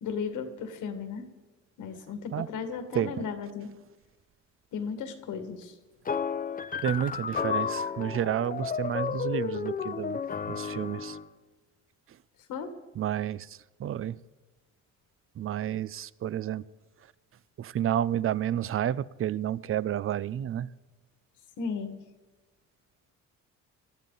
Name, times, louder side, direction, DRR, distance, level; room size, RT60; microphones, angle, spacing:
voice 1, 0.0-1.2 1.8-3.7 4.7-5.8 12.5-12.7 21.6-21.9, left 5 dB, 85° left, 8 dB, 1.8 m, -35 dB
voice 2, 2.9-3.3 6.8-10.2 10.5-11.2 13.0-14.2 15.4-16.6 17.6-20.7, right 10 dB, 45° right, 20 dB, 0.5 m, -30 dB
sound 1, 6.0-11.3, left 6 dB, 30° left, 0.7 m, -32 dB
19.0 x 13.0 x 4.0 m, 1.2 s
cardioid pair, 90°, 30 cm